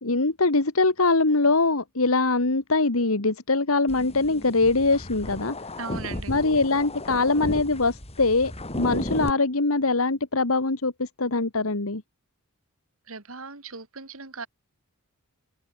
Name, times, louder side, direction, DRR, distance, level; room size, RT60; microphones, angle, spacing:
voice 1, 0.0-5.6 6.3-12.0, left 3 dB, 70° left, 1.8 m, -23 dB
sound 1, 3.9-9.3, left 1 dB, 30° left, 3.7 m, -34 dB
voice 2, 5.8-6.3 13.1-14.5, right 4 dB, 70° right, 2.9 m, -37 dB
open air
head